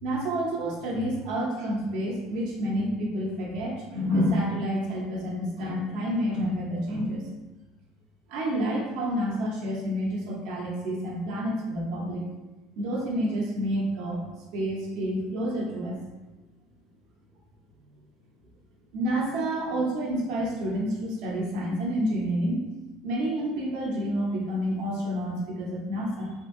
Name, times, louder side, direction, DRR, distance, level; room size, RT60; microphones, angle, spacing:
voice 1, 0.0-7.3 8.3-12.2 12.8-14.2 14.5-16.0 18.9-22.7 23.0-26.3, equal, 70° right, -3 dB, 0.8 m, -29 dB
2.8 x 2.7 x 2.6 m, 1.1 s
supercardioid pair, 125°, 0 cm